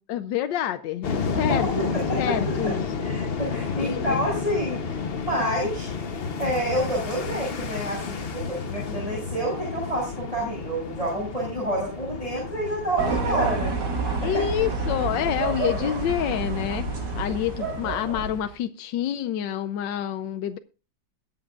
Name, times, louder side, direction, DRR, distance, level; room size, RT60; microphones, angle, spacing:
voice 1, 0.1-2.8 3.8-4.2 14.2-16.9 17.1-20.6, left 10 dB, 85° left, 9 dB, 1.4 m, -28 dB
sound 1, 1.0-18.4, left 5 dB, 45° left, 0.9 m, -32 dB
voice 2, 1.3-2.7 3.0-4.9 5.2-5.9 6.4-13.7 14.2-14.4, right 1 dB, 20° right, -5 dB, 6.2 m, -28 dB
sound 2, 13.0-18.5, right 3 dB, 70° right, 2.7 m, -28 dB
22.0 x 7.7 x 2.4 m, 0.33 s
omnidirectional pair, 1.9 m